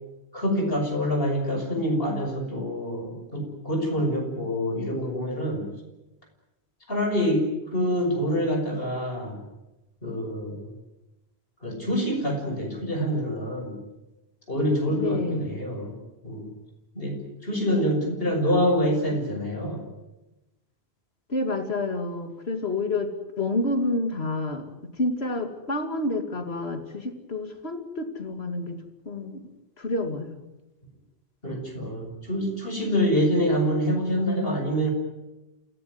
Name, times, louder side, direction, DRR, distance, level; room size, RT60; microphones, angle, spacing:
voice 1, 0.3-5.7 6.9-9.4 10.0-10.7 11.6-13.8 14.5-16.0 16.2-16.5 16.9-19.8 31.4-34.9, equal, 65° left, 3 dB, 6.4 m, -26 dB
voice 2, 14.9-15.6 21.3-28.8 29.1-29.4 29.8-30.4, left 2 dB, 85° left, 6 dB, 2.7 m, -29 dB
28.0 x 17.5 x 9.5 m, 1.0 s
omnidirectional pair, 1.0 m